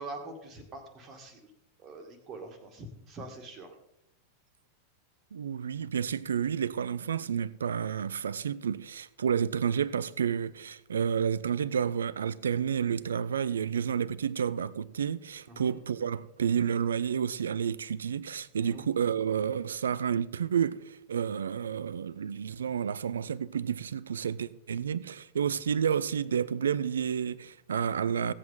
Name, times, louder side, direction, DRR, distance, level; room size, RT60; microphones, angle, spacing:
voice 1, 0.0-1.5 1.8-3.7 15.5-15.7 18.6-18.9, right 2 dB, 30° right, 2.0 m, -44 dB
voice 2, 5.3-28.3, right 7 dB, 70° right, 0.4 m, -30 dB
16.5 x 8.0 x 3.8 m
figure-of-eight pair, 90°, 0 cm